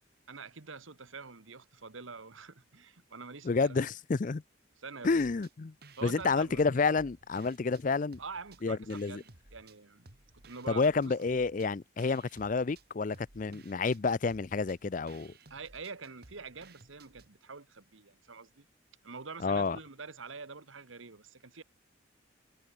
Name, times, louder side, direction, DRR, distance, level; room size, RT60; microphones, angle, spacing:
voice 1, 0.3-3.8 4.8-5.2 6.0-6.8 8.2-10.1 10.4-11.1 15.5-18.6 19.0-21.6, right 4 dB, 80° right, 1.5 m, -46 dB
voice 2, 3.4-4.4 5.0-5.7 6.0-8.2 8.6-9.2 10.7-15.3 19.4-19.8, left 4 dB, 40° left, 0.4 m, -29 dB
sound 1, 5.0-5.5 5.8-7.8 8.1-9.8 10.1-17.3, right 3 dB, 50° right, 2.4 m, -57 dB
head